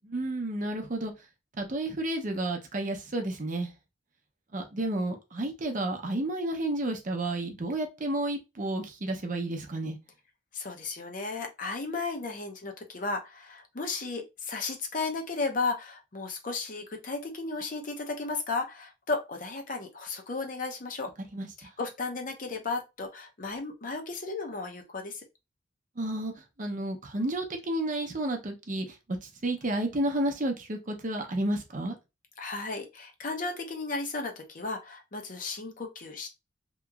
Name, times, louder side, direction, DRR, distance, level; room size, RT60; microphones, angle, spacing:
voice 1, 0.1-1.1 1.6-3.7 4.5-10.0 21.3-21.5 26.0-26.3 26.6-29.2 29.4-32.0, right 1 dB, 40° right, 0.6 m, -31 dB
voice 2, 10.5-21.1 21.6-25.2 32.4-36.3, left 3 dB, 40° left, 0.6 m, -34 dB
2.9 x 2.7 x 2.3 m
head